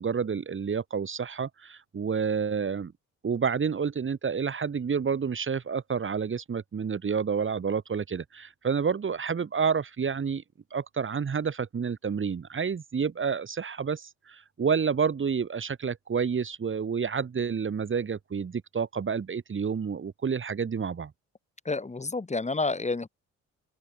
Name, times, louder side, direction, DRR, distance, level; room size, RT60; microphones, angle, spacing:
voice 1, 0.0-2.9 3.2-10.4 10.7-21.1, right 6 dB, 40° right, 4.8 m, -29 dB
voice 2, 21.6-23.1, left 3 dB, 20° left, 5.9 m, -29 dB
open air
cardioid pair, 90°, 30 cm